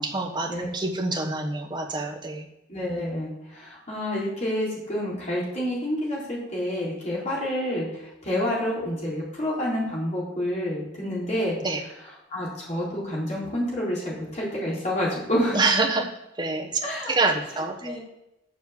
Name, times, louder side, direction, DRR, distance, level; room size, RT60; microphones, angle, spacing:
voice 1, 0.0-2.5 11.6-11.8 15.5-16.1 16.4-16.7 17.1-18.0, right 3 dB, 25° right, 2 dB, 1.2 m, -26 dB
voice 2, 2.7-11.6 12.0-15.6 16.8-17.1 17.8-18.0, left 1 dB, 35° left, -5 dB, 3.9 m, -28 dB
7.3 x 6.6 x 7.0 m, 0.90 s
head